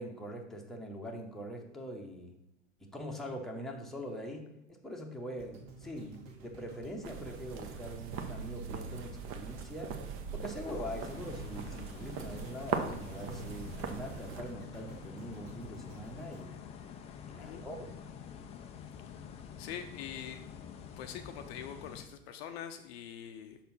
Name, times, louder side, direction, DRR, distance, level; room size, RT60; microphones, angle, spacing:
voice 1, 0.0-2.3 2.8-9.9 10.3-16.6 17.2-17.9, equal, ahead, 0 dB, 0.9 m, -43 dB
sound 1, 5.4-17.6 18.1-18.2, right 3 dB, 50° right, 1.6 m, -53 dB
sound 2, 7.0-14.4, right 6 dB, 35° right, 0.8 m, -40 dB
sound 3, 10.6-22.0, left 8 dB, 15° left, 0.4 m, -47 dB
voice 2, 19.6-20.5 21.0-23.6, left 9 dB, 50° left, 7 dB, 0.6 m, -44 dB
5.9 x 4.3 x 5.4 m, 0.86 s
hypercardioid pair, 100°, 39 cm